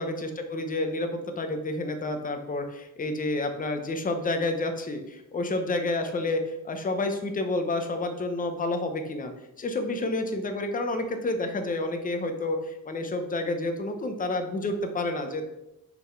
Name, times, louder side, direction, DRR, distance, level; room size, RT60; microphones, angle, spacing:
voice 1, 0.0-9.3 9.6-15.4, left 2 dB, 25° left, 6 dB, 0.7 m, -29 dB
5.9 x 3.8 x 4.4 m, 0.91 s
cardioid pair, 140°, 35 cm